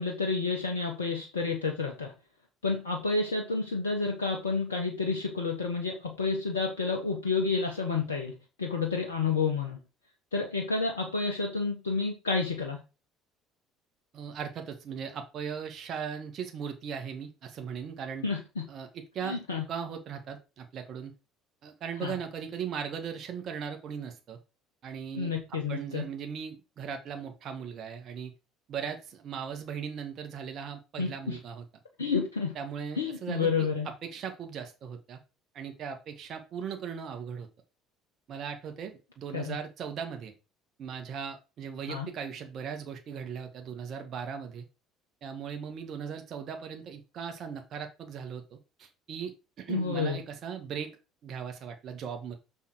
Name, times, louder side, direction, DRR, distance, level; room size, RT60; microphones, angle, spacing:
voice 1, 0.0-2.1 2.6-9.8 10.3-12.8 18.2-18.6 19.2-19.6 22.0-22.2 25.1-26.0 31.0-31.4 32.0-32.6 33.0-33.9 39.3-39.6 41.9-42.1 49.7-50.2, left 4 dB, 85° left, 1 dB, 1.3 m, -30 dB
voice 2, 14.1-18.3 18.7-18.9 19.1-19.4 19.7-21.1 21.6-24.4 24.8-28.3 28.7-31.6 32.6-33.7 34.1-35.2 35.5-37.5 38.3-40.3 40.8-44.7 45.2-49.3 49.6-50.9 51.2-52.3, right 7 dB, 50° right, 5 dB, 1.8 m, -38 dB
6.9 x 6.2 x 4.8 m, 0.29 s
figure-of-eight pair, 60°, 0 cm